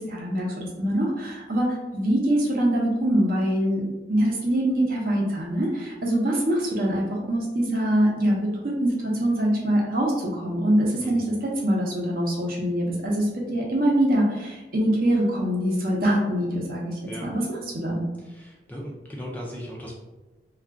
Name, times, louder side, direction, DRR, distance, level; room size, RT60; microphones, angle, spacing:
voice 1, 0.0-3.8 4.1-18.0, right 1 dB, 55° right, -2 dB, 0.7 m, -24 dB
voice 2, 18.3-20.0, equal, 10° left, -3 dB, 0.4 m, -37 dB
2.4 x 2.3 x 3.5 m, 1.1 s
head